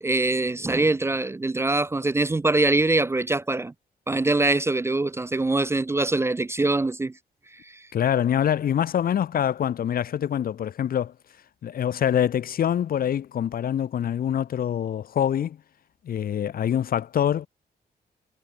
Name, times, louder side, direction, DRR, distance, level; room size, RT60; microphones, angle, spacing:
voice 1, 0.0-3.7 4.1-7.1 7.6-7.8, right 2 dB, 15° right, 0.5 m, -23 dB
voice 2, 7.9-11.1 11.6-15.6 16.0-17.5, left 9 dB, 60° left, 0.8 m, -25 dB
wide cardioid pair, 150°, 17 cm